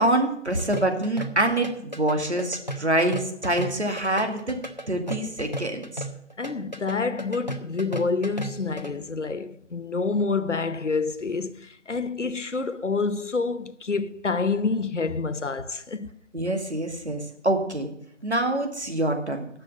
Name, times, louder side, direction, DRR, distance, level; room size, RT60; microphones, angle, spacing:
voice 1, 0.0-4.6 4.9-6.0 16.3-17.9 18.2-19.5, right 1 dB, 65° right, 2.1 m, -25 dB
sound 1, 0.6-8.9, right 1 dB, 35° left, 0.8 m, -35 dB
voice 2, 6.4-16.1, left 4 dB, 75° left, 0.8 m, -28 dB
10.5 x 6.8 x 7.6 m
figure-of-eight pair, 175°, 36 cm